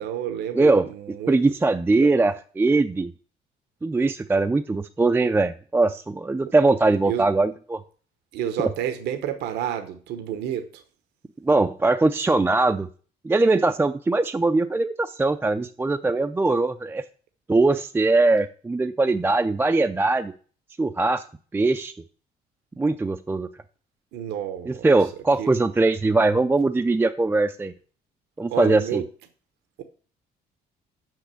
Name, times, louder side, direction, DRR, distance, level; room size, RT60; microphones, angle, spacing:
voice 1, 0.0-1.4 2.0-2.1 7.1-7.2 8.3-10.8 24.1-24.9 25.4-25.5 28.5-29.1, right 10 dB, 80° right, 8 dB, 0.9 m, -29 dB
voice 2, 0.5-0.9 1.3-3.1 3.8-7.8 11.4-12.9 13.2-17.0 17.5-20.3 20.8-21.2 21.5-21.9 22.8-23.5 24.7-27.7 28.4-29.0, right 3 dB, 10° right, 7 dB, 0.4 m, -21 dB
6.1 x 6.0 x 6.8 m, 0.42 s
cardioid pair, 110°, 17 cm